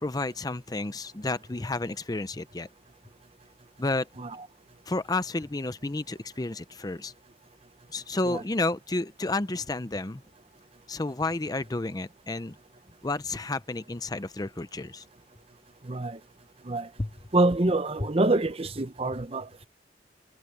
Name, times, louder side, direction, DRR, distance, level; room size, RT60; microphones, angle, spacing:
voice 1, 0.0-2.7 3.8-4.1 4.9-7.1 7.9-10.2 10.9-12.6 13.0-15.0 17.0-17.1, left 2 dB, 20° left, 0.6 m, -31 dB
voice 2, 15.8-16.2 16.6-16.9 17.3-19.7, right 2 dB, 35° right, 0.8 m, -26 dB
head